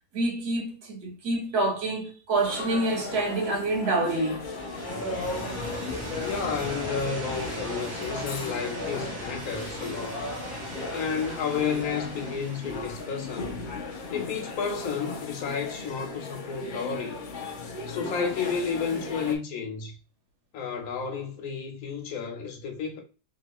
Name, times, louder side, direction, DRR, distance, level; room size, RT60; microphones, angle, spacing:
voice 1, 0.1-4.5, right 2 dB, 80° right, 1.6 m, -27 dB
sound 1, 2.3-19.4, left 3 dB, 90° left, 0.4 m, -36 dB
sound 2, 4.4-15.1, right 2 dB, 35° right, 1.0 m, -40 dB
voice 2, 6.2-10.2 10.9-13.6 14.1-17.2 17.9-20.0 20.5-23.0, left 6 dB, 65° left, 1.2 m, -31 dB
3.0 x 2.9 x 3.0 m
omnidirectional pair, 1.7 m